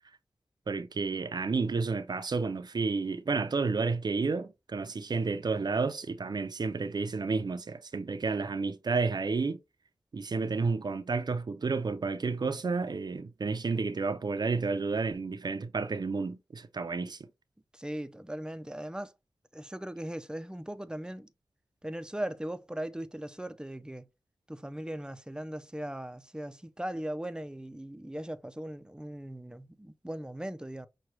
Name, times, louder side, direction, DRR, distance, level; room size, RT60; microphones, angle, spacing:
voice 1, 0.7-9.6 10.1-17.2, right 4 dB, 60° right, 0.5 m, -31 dB
voice 2, 17.7-19.1 19.5-21.3 21.8-24.1 24.5-30.9, right 1 dB, 10° right, 0.5 m, -39 dB
6.0 x 2.3 x 3.0 m
cardioid pair, 50°, 8 cm